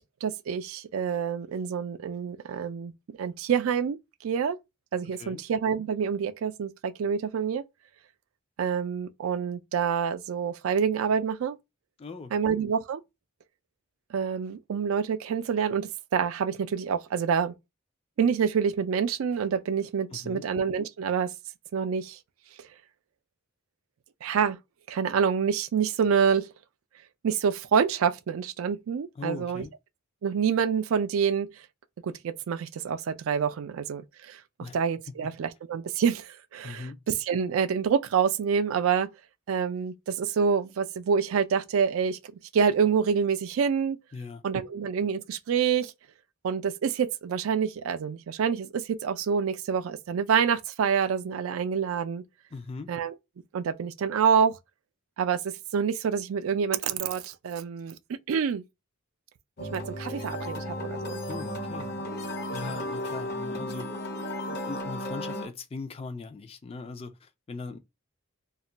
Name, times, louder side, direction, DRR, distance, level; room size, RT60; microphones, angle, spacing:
voice 1, 0.0-2.9 3.2-4.6 4.9-7.6 8.6-11.6 12.3-13.0 14.1-17.6 18.2-21.3 21.7-22.2 22.6-22.7 24.2-24.6 24.9-26.5 27.2-29.6 30.2-31.5 32.0-34.4 34.7-39.1 39.5-44.0 44.4-45.9 46.4-52.2 52.9-53.1 53.5-54.6 55.2-58.0 58.3-58.6 59.6-61.2 62.7-62.8, right 7 dB, 85° right, 0.4 m, -27 dB
voice 2, 5.0-5.4 12.0-12.5 20.1-20.5 29.2-29.7 34.6-34.8 35.1-35.3 36.6-37.0 44.1-44.4 52.5-52.9 61.2-62.0 62.5-63.9 64.5-67.8, left 4 dB, 30° left, 0.3 m, -40 dB
sound 1, 59.6-65.5, left 1 dB, 50° left, 0.7 m, -34 dB
2.3 x 2.1 x 3.8 m
head